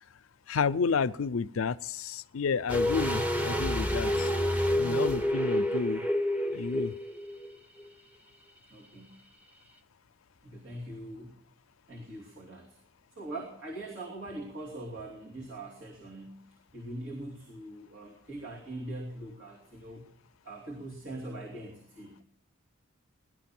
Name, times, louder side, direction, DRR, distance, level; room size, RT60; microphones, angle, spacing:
voice 1, 0.5-4.3 4.8-6.0 6.5-6.9, left 5 dB, 85° left, 14 dB, 0.5 m, -30 dB
sound 1, 2.7-7.5 7.8-7.9, left 1 dB, 5° right, 0.8 m, -28 dB
voice 2, 8.7-9.2 10.4-11.4 11.9-12.8 13.1-20.1 20.4-22.2, right 1 dB, 65° right, -3 dB, 2.9 m, -42 dB
18.0 x 12.0 x 6.0 m, 0.81 s
head